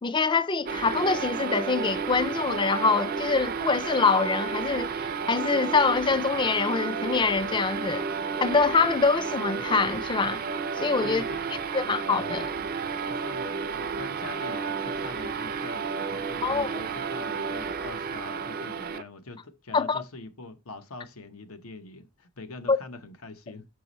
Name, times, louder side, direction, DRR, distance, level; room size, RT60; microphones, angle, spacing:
voice 1, 0.0-8.0 8.4-10.4 10.8-11.2 11.7-12.5 16.4-16.9 19.7-20.0 22.7-22.8, left 4 dB, 20° left, 0.4 m, -25 dB
sound 1, 0.7-19.0, right 5 dB, 40° right, 0.4 m, -32 dB
voice 2, 11.0-11.4 13.1-23.7, left 3 dB, 80° left, 0.9 m, -43 dB
6.1 x 4.7 x 4.0 m
head